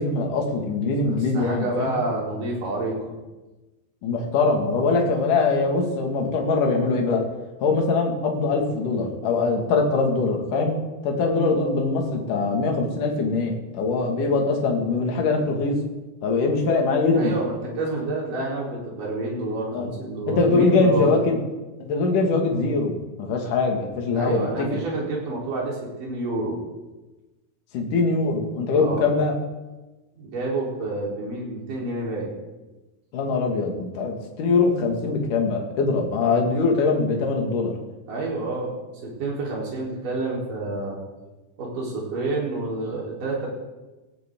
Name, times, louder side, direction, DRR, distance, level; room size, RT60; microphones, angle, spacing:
voice 1, 0.0-2.0 4.0-7.2 7.6-10.8 11.0-15.8 16.2-17.4 19.7-19.9 20.3-21.4 21.8-24.7 27.7-29.4 33.1-37.7, left 3 dB, 60° left, 1 dB, 3.6 m, -22 dB
voice 2, 1.0-3.1 17.2-21.1 24.2-26.6 28.7-29.1 30.1-32.3 38.1-41.0 41.6-43.5, right 2 dB, 60° right, -4 dB, 5.5 m, -28 dB
17.5 x 16.5 x 3.8 m, 1.1 s
omnidirectional pair, 4.3 m